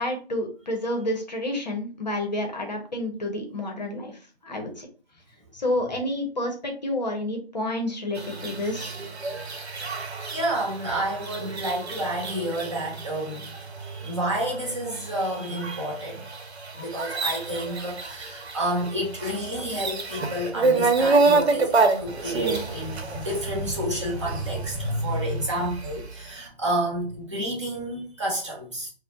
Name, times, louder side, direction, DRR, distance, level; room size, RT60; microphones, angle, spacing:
voice 1, 0.0-4.9 5.5-8.9, left 1 dB, 40° left, 0.7 m, -29 dB
sound 1, 8.1-26.0, right 3 dB, 80° right, 0.8 m, -28 dB
voice 2, 9.7-13.6 13.8-16.2 16.7-28.9, right 1 dB, 30° right, 0.8 m, -30 dB
2.4 x 2.0 x 3.8 m
figure-of-eight pair, 160°, 32 cm